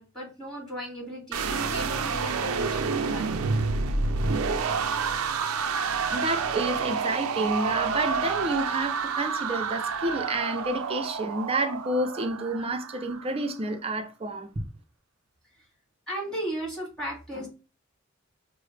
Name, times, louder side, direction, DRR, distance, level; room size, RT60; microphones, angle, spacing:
voice 1, 0.0-3.3 6.4-6.5 16.1-17.5, right 1 dB, ahead, 1.9 m, -36 dB
sound 1, 1.3-13.4, right 5 dB, 90° right, 0.4 m, -29 dB
voice 2, 6.1-14.5, right 2 dB, 25° right, 0.5 m, -29 dB
4.7 x 2.1 x 3.2 m
head